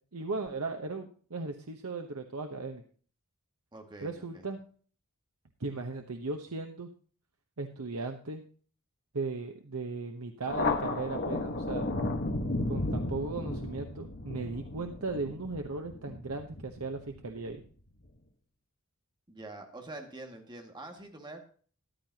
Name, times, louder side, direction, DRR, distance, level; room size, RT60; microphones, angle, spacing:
voice 1, 0.1-2.8 4.0-4.6 5.6-6.9 7.6-8.4 9.1-11.8 12.7-17.6, right 3 dB, 85° right, 4 dB, 1.0 m, -37 dB
voice 2, 3.7-4.4 19.3-21.4, right 2 dB, 20° right, 3 dB, 2.0 m, -45 dB
Thunder, 10.5-17.5, left 2 dB, 50° left, 1.3 m, -34 dB
14.0 x 10.5 x 2.9 m, 0.44 s
head